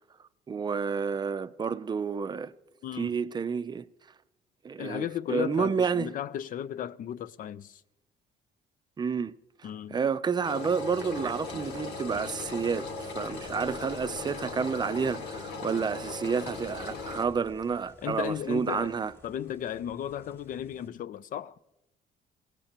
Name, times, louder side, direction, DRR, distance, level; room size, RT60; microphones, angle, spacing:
voice 1, 0.5-2.5 3.0-3.8 4.6-6.1 9.0-9.3 9.9-19.1, right 6 dB, 25° right, 0.5 m, -30 dB
voice 2, 2.8-3.2 4.8-7.8 9.6-10.0 18.0-21.5, left 10 dB, 55° left, 0.6 m, -35 dB
Engine, 10.4-17.2, left 4 dB, 80° left, 1.7 m, -38 dB
sound 1, 10.9-20.9, left 1 dB, 15° left, 2.3 m, -54 dB
26.0 x 17.0 x 3.0 m
cardioid pair, 110°, 17 cm